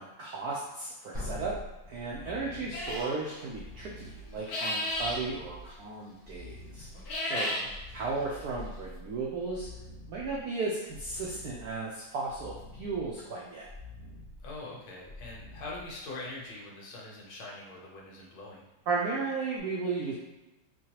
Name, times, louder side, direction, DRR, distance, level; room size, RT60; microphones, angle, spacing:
voice 1, 0.0-1.6 1.9-6.9 7.2-7.5 7.9-9.7 10.1-13.7 18.9-20.1, right 4 dB, 80° right, -4 dB, 0.8 m, -35 dB
sound 1, 1.1-16.4 19.6-19.7, left 1 dB, 30° right, 0.3 m, -46 dB
sound 2, 2.7-3.1 4.4-5.2 6.9-7.7, left 1 dB, 55° left, 1.1 m, -32 dB
voice 2, 7.3-7.7 14.4-18.6, left 2 dB, 75° left, -3 dB, 1.7 m, -43 dB
4.6 x 2.3 x 2.9 m, 1.0 s
omnidirectional pair, 2.3 m